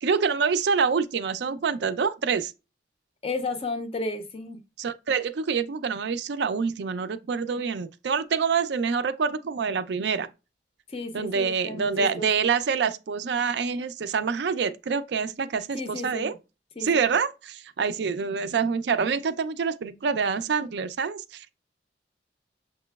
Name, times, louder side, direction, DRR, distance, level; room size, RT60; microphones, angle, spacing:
voice 1, 0.0-2.5 4.8-10.3 11.1-16.3 16.8-21.5, right 5 dB, 70° right, 0.4 m, -26 dB
voice 2, 3.2-4.6 10.9-12.3 15.7-16.4 16.8-16.9, left 2 dB, 30° left, 0.4 m, -33 dB
6.5 x 2.9 x 2.3 m
head